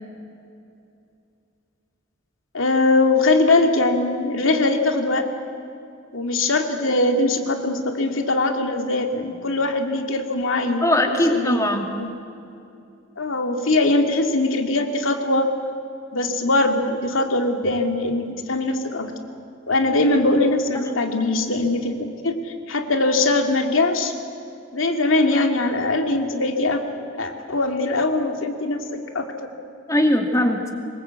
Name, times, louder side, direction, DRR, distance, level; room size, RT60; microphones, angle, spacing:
voice 1, 2.5-5.3 6.1-11.6 12.0-12.1 13.2-15.5 16.1-19.1 19.7-24.1 24.7-26.8 27.2-29.3, left 2 dB, 85° left, 4 dB, 2.3 m, -21 dB
voice 2, 10.8-11.9 20.7-20.8 29.9-30.7, left 1 dB, 15° left, 3 dB, 2.4 m, -20 dB
25.0 x 22.0 x 8.2 m, 2.6 s
head